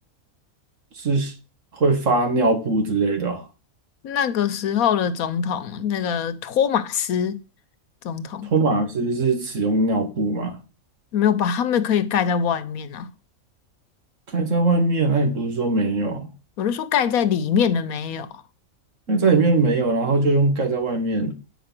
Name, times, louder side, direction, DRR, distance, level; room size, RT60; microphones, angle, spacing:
voice 1, 1.0-1.3 1.8-3.4 8.5-10.6 14.3-16.3 19.1-21.3, right 3 dB, 60° right, 1.9 m, -21 dB
voice 2, 4.0-7.4 8.0-8.5 11.1-13.1 16.6-18.4, left 8 dB, 85° left, 1.3 m, -23 dB
8.9 x 6.2 x 6.0 m
omnidirectional pair, 1.5 m